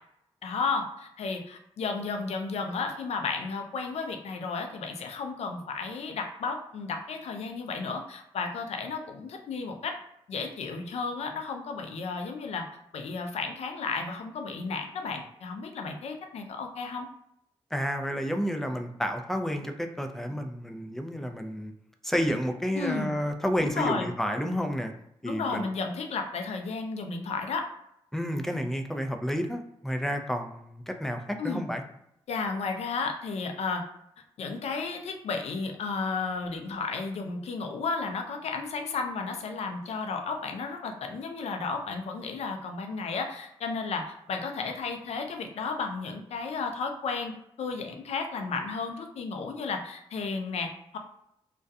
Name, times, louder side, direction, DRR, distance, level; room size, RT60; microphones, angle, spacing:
voice 1, 0.4-9.9 10.3-12.7 12.9-17.1 22.7-23.1 23.6-24.1 25.2-27.6 31.4-31.6 32.3-33.8 34.4-47.3 47.6-51.0, left 4 dB, 70° left, 4 dB, 0.4 m, -33 dB
voice 2, 17.7-21.7 22.0-24.9 25.2-25.7 28.1-31.8, equal, 5° left, 5 dB, 0.4 m, -30 dB
2.3 x 2.2 x 2.6 m, 0.78 s
supercardioid pair, 45°, 11 cm